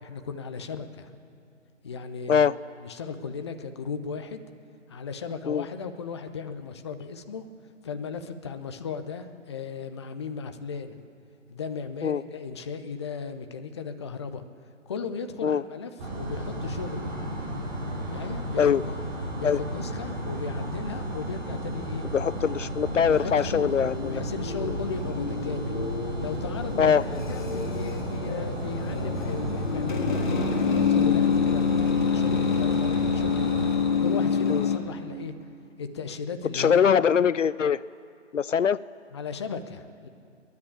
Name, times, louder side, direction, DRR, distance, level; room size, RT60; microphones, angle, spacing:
voice 1, 0.0-1.1 1.8-2.4 2.8-4.4 4.9-7.5 7.8-11.0 11.5-14.4 14.9-17.1 18.1-19.0 19.3-22.1 23.1-23.7 24.1-25.8 26.2-35.3 35.8-36.9 39.1-40.1, left 5 dB, 20° left, 8 dB, 0.7 m, -36 dB
sound 1, 16.0-33.7, right 1 dB, 35° right, 4.7 m, -33 dB
voice 2, 22.1-24.2 24.6-24.8 26.8-27.0 34.5-34.7 36.5-37.8 38.3-38.8, left 7 dB, 70° left, 18 dB, 0.5 m, -22 dB
sound 2, 23.1-34.8, left 6 dB, 40° left, 1.7 m, -27 dB
29.5 x 10.5 x 8.6 m, 2.5 s
figure-of-eight pair, 140°, 39 cm